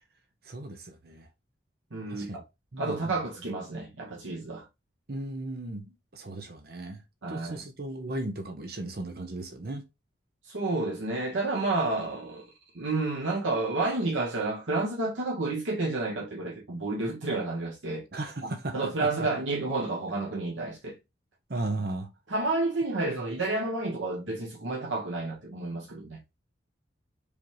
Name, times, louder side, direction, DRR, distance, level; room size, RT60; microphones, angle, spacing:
voice 1, 0.4-1.3 2.1-2.4 2.7-3.2 5.1-7.0 7.3-9.8 18.1-19.3 21.5-22.1, right 2 dB, 50° right, 0.7 m, -36 dB
voice 2, 1.9-2.4 2.8-4.7 7.2-7.6 10.4-12.5 12.7-18.0 18.4-21.0 22.3-26.2, right 2 dB, 85° right, 1.1 m, -30 dB
4.9 x 3.4 x 2.9 m
head